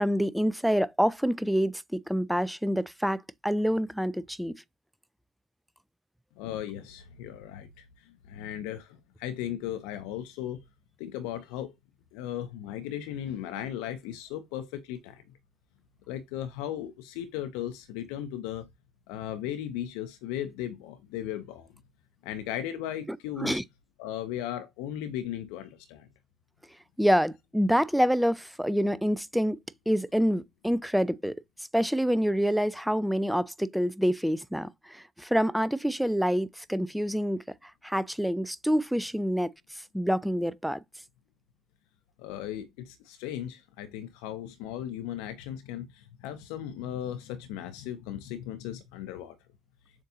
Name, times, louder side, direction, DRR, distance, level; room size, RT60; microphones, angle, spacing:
voice 1, 0.0-4.6 23.4-23.6 27.0-29.6 29.9-31.4 31.7-37.4 37.8-39.5 39.9-40.8, equal, ahead, 0.3 m, -27 dB
voice 2, 6.4-10.6 11.0-11.7 12.1-15.2 16.1-18.7 19.1-21.7 22.2-23.6 24.0-26.1 42.2-49.4, left 11 dB, 70° left, 0.5 m, -37 dB
7.1 x 2.6 x 2.6 m
hypercardioid pair, 60°, 0 cm